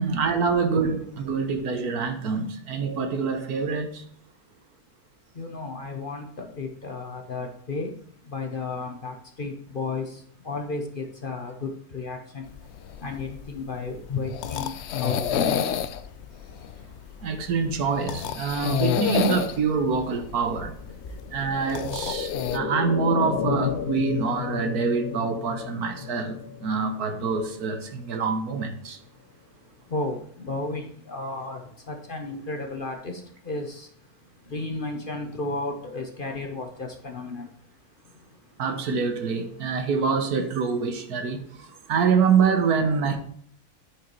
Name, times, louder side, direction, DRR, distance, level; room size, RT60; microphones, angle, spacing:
voice 1, 0.0-4.0 17.2-20.7 21.3-29.0 38.6-43.2, right 5 dB, 80° right, 1.6 m, -25 dB
voice 2, 5.3-17.4 20.8-21.4 29.1-38.6 41.7-41.9, left 3 dB, 40° left, 1.0 m, -35 dB
sound 1, 12.5-22.6, left 8 dB, 65° left, 0.6 m, -30 dB
sound 2, 19.5-28.4 28.7-28.8, left 9 dB, 90° left, 1.2 m, -34 dB
9.2 x 5.0 x 4.5 m
omnidirectional pair, 1.6 m